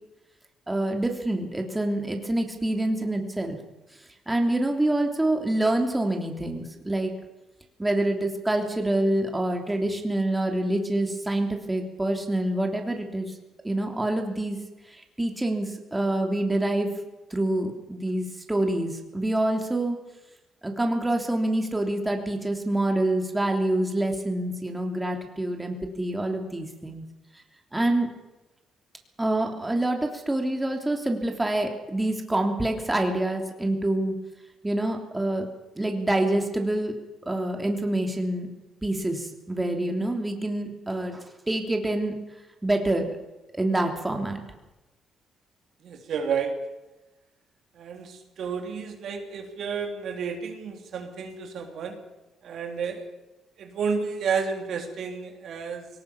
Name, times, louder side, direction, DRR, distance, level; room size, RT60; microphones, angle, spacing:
voice 1, 0.7-3.6 4.3-7.1 7.8-13.3 13.6-14.6 14.9-16.9 17.3-20.0 20.6-27.0 27.7-28.1 29.2-34.1 34.6-35.5 35.7-38.5 38.8-42.2 42.6-43.2 43.5-44.4, right 1 dB, 15° right, 3 dB, 3.2 m, -26 dB
voice 2, 45.8-46.5 47.7-52.0 52.4-53.1 53.6-55.9, right 6 dB, 65° right, 4 dB, 3.4 m, -31 dB
21.5 x 18.5 x 7.2 m, 1.0 s
cardioid pair, 90°, 0 cm